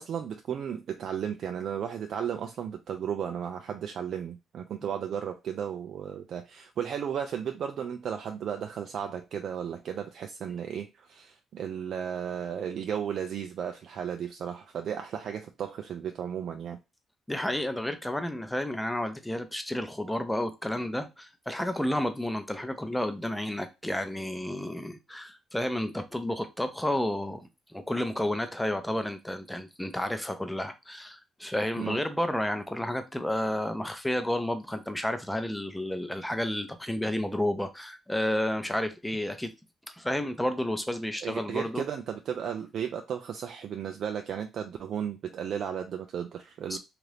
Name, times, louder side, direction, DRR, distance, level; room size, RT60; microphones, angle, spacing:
voice 1, 0.0-16.8 31.8-32.0 41.2-46.8, right 8 dB, 65° right, 0.3 m, -34 dB
voice 2, 17.3-39.5 40.0-41.8 46.7-46.8, left 1 dB, 5° left, 0.6 m, -31 dB
2.8 x 2.4 x 3.2 m
cardioid pair, 90°, 0 cm